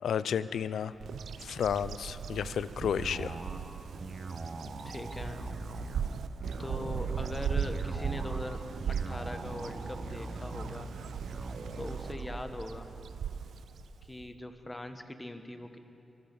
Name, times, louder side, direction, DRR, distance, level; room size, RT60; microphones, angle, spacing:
voice 1, 0.0-0.9 1.4-3.4, left 8 dB, 80° left, 16 dB, 0.4 m, -32 dB
Bird vocalization bird call bird song, 1.0-14.3, right 7 dB, 80° right, 0.4 m, -38 dB
sound 1, 2.8-12.4, right 2 dB, 40° right, 1.3 m, -41 dB
voice 2, 4.8-5.4 6.6-8.6 8.9-10.9 11.7-12.9 14.0-15.8, left 1 dB, 20° left, 8 dB, 1.4 m, -41 dB
23.5 x 8.0 x 7.0 m, 2.9 s
supercardioid pair, 45°, 0 cm